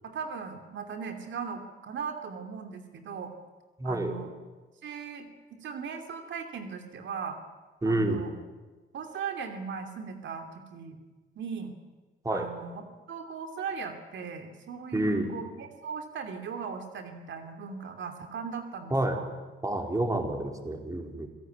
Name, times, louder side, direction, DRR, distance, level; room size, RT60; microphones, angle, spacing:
voice 1, 0.0-3.3 3.8-4.3 4.8-5.3 5.6-7.4 7.8-8.3 8.9-11.0 11.4-11.7 12.3-19.3, right 6 dB, 70° right, 6 dB, 2.9 m, -38 dB
voice 2, 3.8-4.2 7.8-8.2 12.2-12.5 14.9-15.3 18.9-19.2 19.6-21.3, right 1 dB, 15° right, 4 dB, 4.5 m, -28 dB
28.5 x 17.0 x 9.8 m, 1.3 s
cardioid pair, 90°, 20 cm